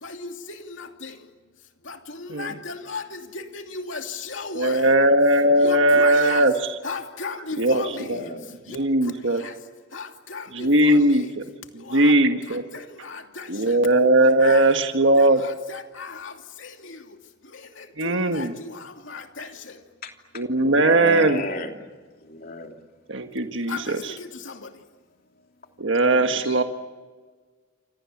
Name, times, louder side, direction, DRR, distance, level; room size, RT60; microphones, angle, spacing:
voice 1, 0.0-1.1 1.9-4.9 5.6-6.5 6.8-8.1 8.7-8.8 9.0-9.1 9.4-9.5 9.9-11.2 11.8-12.1 12.7-13.7 14.4-14.6 15.2-16.3 16.6-17.0 17.8-19.7 23.7-24.7, left 4 dB, 75° left, 2.7 m, -36 dB
voice 2, 4.5-6.5 7.6-8.2 8.7-9.4 10.5-11.4 11.7-12.6 13.5-15.4 18.0-18.5 20.3-21.4 23.1-24.1 25.8-26.6, right 1 dB, 70° right, 1.6 m, -19 dB
voice 3, 8.0-8.5 20.0-21.7 22.2-22.8 26.1-26.6, left 1 dB, 50° left, 3.1 m, -34 dB
28.5 x 26.5 x 7.3 m
head